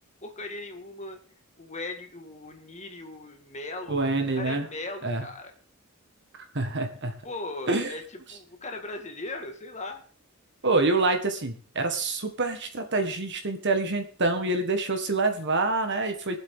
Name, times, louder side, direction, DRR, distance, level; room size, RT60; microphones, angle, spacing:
voice 1, 0.2-1.2 1.6-4.1 4.3-5.5 7.2-8.0 8.3-10.0, left 2 dB, 35° left, 4 dB, 1.9 m, -38 dB
voice 2, 3.9-4.7 5.0-5.3 6.5-7.1 7.7-7.9 10.6-16.4, right 3 dB, 55° right, 6 dB, 1.7 m, -26 dB
22.5 x 7.7 x 3.8 m, 0.40 s
head